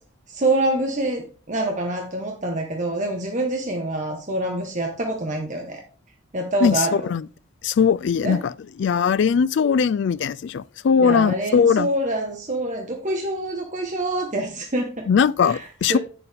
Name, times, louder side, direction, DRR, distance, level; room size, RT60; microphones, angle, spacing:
voice 1, 0.3-5.8 6.3-7.1 8.2-8.4 11.0-15.1 15.4-16.0, right 1 dB, 35° right, 1.0 m, -26 dB
voice 2, 6.6-7.2 7.6-8.5 8.8-11.9 15.1-16.0, left 6 dB, 60° left, 0.3 m, -20 dB
8.6 x 6.9 x 3.5 m
head